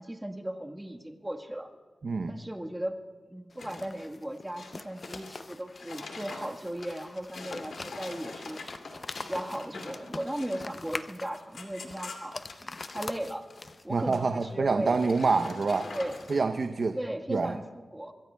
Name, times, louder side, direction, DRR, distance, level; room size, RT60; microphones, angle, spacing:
voice 1, 0.0-1.7 2.3-3.0 3.3-8.6 9.2-13.5 13.8-15.0 15.9-16.2 16.9-18.1, right 1 dB, 10° right, 3 dB, 1.4 m, -37 dB
voice 2, 2.0-2.4 13.9-15.9 16.3-17.0 17.3-17.6, right 4 dB, 60° right, 7 dB, 0.7 m, -26 dB
sound 1, 3.5-14.0, left 3 dB, 40° left, 0.5 m, -44 dB
sound 2, 3.6-4.1 4.4-13.1 13.4-13.7 14.0-14.5 14.8-16.3, left 3 dB, 90° left, 2.3 m, -44 dB
25.5 x 23.0 x 2.2 m, 1.5 s
wide cardioid pair, 90°, 0 cm